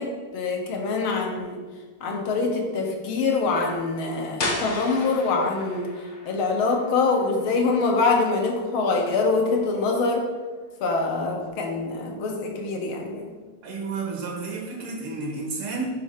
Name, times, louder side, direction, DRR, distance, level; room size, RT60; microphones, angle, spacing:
voice 1, 0.0-1.6 2.0-5.9 6.2-10.3 10.8-13.3, left 3 dB, 75° left, 1 dB, 1.8 m, -24 dB
sound 1, 4.4-10.0, left 2 dB, 50° left, 0.6 m, -36 dB
voice 2, 13.6-15.9, right 4 dB, 85° right, -1 dB, 2.3 m, -31 dB
7.0 x 3.2 x 5.5 m, 1.4 s
omnidirectional pair, 2.3 m